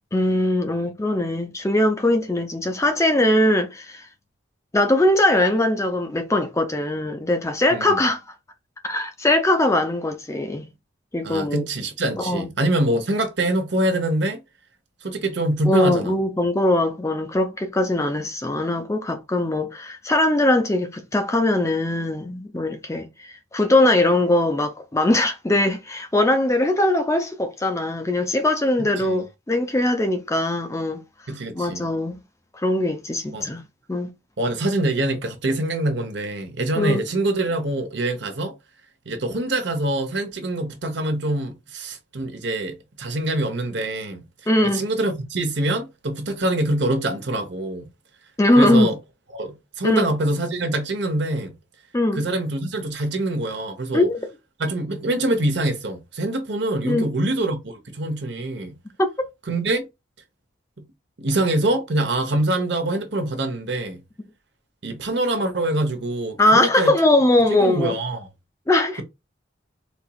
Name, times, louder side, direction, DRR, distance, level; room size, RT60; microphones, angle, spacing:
voice 1, 0.1-4.1 4.7-8.2 8.8-10.7 11.1-11.7 12.2-12.5 15.7-31.0 31.6-32.2 32.5-33.6 33.9-34.1 36.8-37.0 44.5-44.8 48.4-48.9 49.8-50.1 51.9-52.2 53.9-54.2 56.8-57.1 59.0-59.1 66.4-68.0 68.7-69.0, left 1 dB, 15° left, 0.4 m, -21 dB
voice 2, 11.2-14.4 15.0-16.2 28.8-29.2 31.3-31.8 33.3-33.5 34.4-38.5 39.1-44.2 44.7-47.9 48.6-49.0 49.3-51.5 52.2-54.1 54.6-58.8 59.5-59.8 60.8-60.9 61.2-64.0 64.8-66.9 67.5-68.3, right 1 dB, 60° right, 0.9 m, -24 dB
4.2 x 2.9 x 2.3 m
head